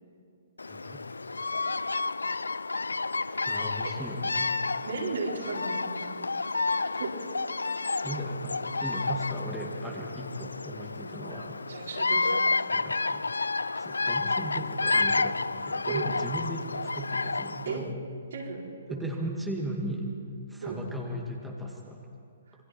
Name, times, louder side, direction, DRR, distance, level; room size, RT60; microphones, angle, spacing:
Bird vocalization bird call bird song, 0.6-17.8, left 3 dB, 85° left, 0.4 m, -30 dB
voice 1, 0.6-1.0 3.5-4.5 8.0-11.6 12.7-13.2 13.8-15.4 15.6-18.0 18.9-20.1 20.5-22.1, right 1 dB, 5° right, -2 dB, 2.3 m, -37 dB
voice 2, 3.2-3.5 3.8-4.1 4.8-5.9 6.1-6.3 6.9-7.1 11.6-12.5 15.9-16.1 17.6-17.8 18.3-18.6 18.9-19.1 20.6-20.8, right 4 dB, 65° right, -3 dB, 4.9 m, -35 dB
26.5 x 22.0 x 4.5 m, 2.4 s
figure-of-eight pair, 130°, 0 cm